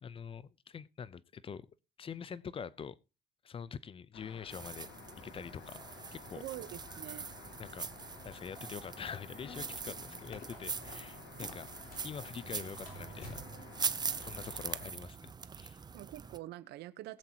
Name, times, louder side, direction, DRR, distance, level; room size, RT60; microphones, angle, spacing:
voice 1, 0.0-1.7 2.0-3.0 3.4-4.9 5.2-6.4 7.6-7.9 8.2-11.7 12.0-13.4 14.1-15.8, left 7 dB, 35° left, 0.6 m, -45 dB
sound 1, 4.1-14.9, left 6 dB, 85° left, 2.4 m, -53 dB
sound 2, 4.5-16.4, right 5 dB, 25° right, 0.6 m, -42 dB
voice 2, 6.3-7.3 15.9-17.2, right 16 dB, 85° right, 0.9 m, -45 dB
sound 3, 9.3-12.1 12.4-13.7, left 3 dB, 60° left, 3.7 m, -52 dB
21.0 x 7.8 x 2.9 m
cardioid pair, 110°, 17 cm